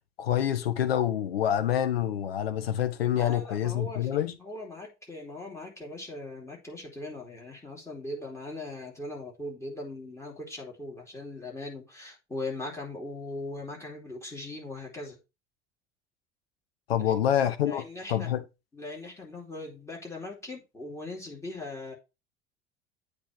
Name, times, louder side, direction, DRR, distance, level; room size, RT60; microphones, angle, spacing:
voice 1, 0.2-4.3 16.9-17.8 18.1-18.4, left 10 dB, 70° left, 0.9 m, -26 dB
voice 2, 3.2-15.2 16.9-17.1 17.6-18.3 18.7-21.9, left 2 dB, 10° left, 2.9 m, -40 dB
8.3 x 3.2 x 5.9 m
figure-of-eight pair, 75°, 32 cm